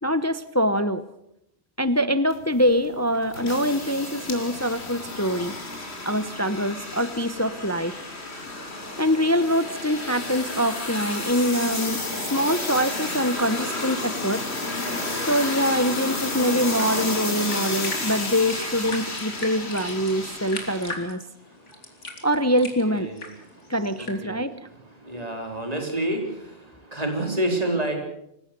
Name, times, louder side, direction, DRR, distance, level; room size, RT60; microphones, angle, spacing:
voice 1, 0.0-1.0 1.8-5.6 6.0-8.0 9.0-12.0 12.3-14.4 15.1-21.2 22.2-23.1 23.7-24.5, equal, 15° left, 13 dB, 0.7 m, -24 dB
sound 1, 2.3-20.9, left 2 dB, 60° left, 3.4 m, -31 dB
sound 2, 17.1-24.1, left 2 dB, 80° left, 3.4 m, -40 dB
voice 2, 25.1-26.2 26.9-28.0, right 1 dB, 30° right, 3 dB, 4.1 m, -27 dB
26.0 x 15.5 x 6.7 m, 0.76 s
omnidirectional pair, 1.2 m